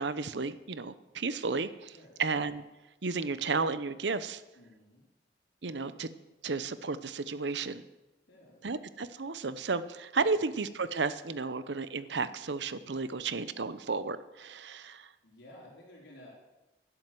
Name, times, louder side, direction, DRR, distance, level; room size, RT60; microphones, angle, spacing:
voice 1, 0.0-2.6 3.0-4.4 5.6-6.1 6.4-7.8 8.6-15.1, right 4 dB, 85° right, 14 dB, 0.8 m, -33 dB
voice 2, 4.5-5.0 8.3-8.6 10.3-10.4 15.2-16.3, left 1 dB, 90° left, -4 dB, 4.2 m, -54 dB
12.0 x 11.0 x 7.7 m, 1.0 s
head